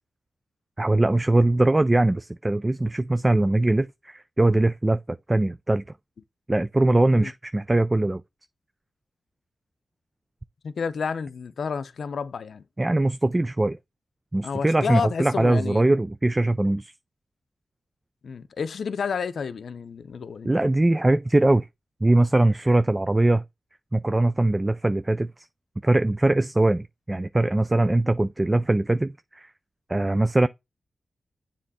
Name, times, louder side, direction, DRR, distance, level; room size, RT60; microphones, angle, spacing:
voice 1, 0.8-5.8 6.5-8.2 12.8-13.8 14.3-16.9 20.4-21.7 22.0-23.4 23.9-25.3 25.8-29.5 29.9-30.5, right 2 dB, 20° right, 0.3 m, -21 dB
voice 2, 10.6-12.6 14.4-15.8 18.2-20.5, left 6 dB, 75° left, 0.5 m, -30 dB
7.5 x 3.5 x 4.2 m
cardioid pair, 60°, 0 cm